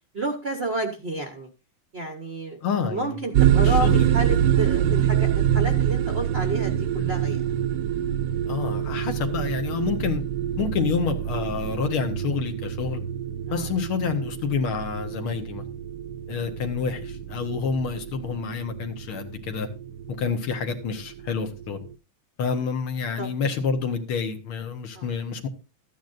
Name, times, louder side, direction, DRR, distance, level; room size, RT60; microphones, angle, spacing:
voice 1, 0.1-1.5 1.9-2.6 2.8-7.4 13.5-13.7 23.2-23.3 24.9-25.1, right 2 dB, 45° right, 0.8 m, -30 dB
voice 2, 2.6-3.2 3.6-4.4 8.5-10.2 10.6-13.0 13.5-15.6 16.3-19.7 20.1-21.8 22.4-25.5, left 5 dB, 80° left, 2.1 m, -28 dB
sound 1, 3.3-21.9, right 10 dB, 70° right, 1.2 m, -25 dB
13.5 x 9.2 x 2.6 m
omnidirectional pair, 2.3 m